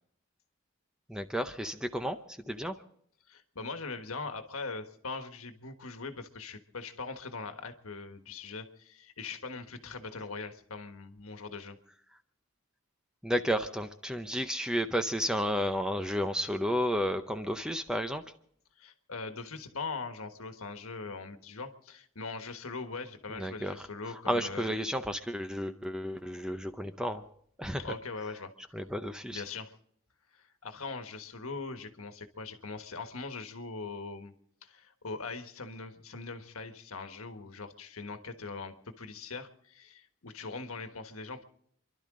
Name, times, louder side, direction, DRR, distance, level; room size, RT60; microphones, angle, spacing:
voice 1, 1.1-2.2 2.5-2.8 13.2-18.2 23.3-23.7 24.3-27.2 27.6-27.8 28.7-29.4, equal, 5° right, 8 dB, 0.6 m, -32 dB
voice 2, 3.3-11.8 18.8-24.8 27.8-28.8 29.3-29.7 30.3-34.3 34.6-41.4, left 4 dB, 85° left, 7 dB, 1.4 m, -41 dB
29.5 x 12.0 x 3.8 m, 0.66 s
head